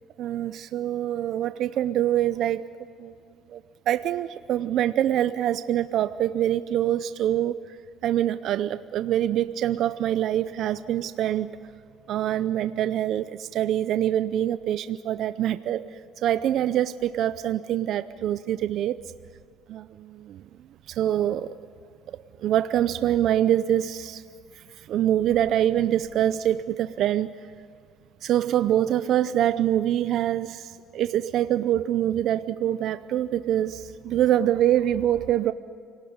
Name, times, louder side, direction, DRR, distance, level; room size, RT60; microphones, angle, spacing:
voice 1, 0.2-2.6 3.0-3.1 3.5-3.6 3.9-7.8 8.0-11.6 12.1-19.0 19.7-20.4 20.9-21.5 22.4-24.2 24.6-27.5 28.2-35.5, right 11 dB, 65° right, 13 dB, 0.6 m, -25 dB
27.0 x 18.5 x 9.5 m, 2.2 s
cardioid pair, 105°, 0 cm